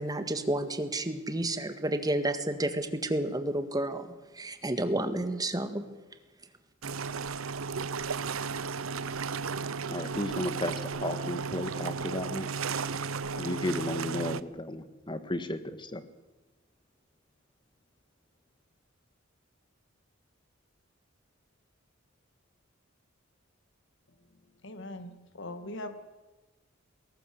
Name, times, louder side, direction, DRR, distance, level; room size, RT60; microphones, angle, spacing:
voice 1, 0.0-4.1 4.3-5.8, right 1 dB, 20° right, 9 dB, 1.8 m, -30 dB
sound 1, 6.8-14.4, right 5 dB, 90° right, 0.8 m, -34 dB
voice 2, 9.9-12.5 13.3-16.0, left 1 dB, 25° left, 11 dB, 1.6 m, -34 dB
voice 3, 24.6-25.9, left 1 dB, 65° left, 9 dB, 2.1 m, -40 dB
21.5 x 18.5 x 7.8 m, 1.1 s
head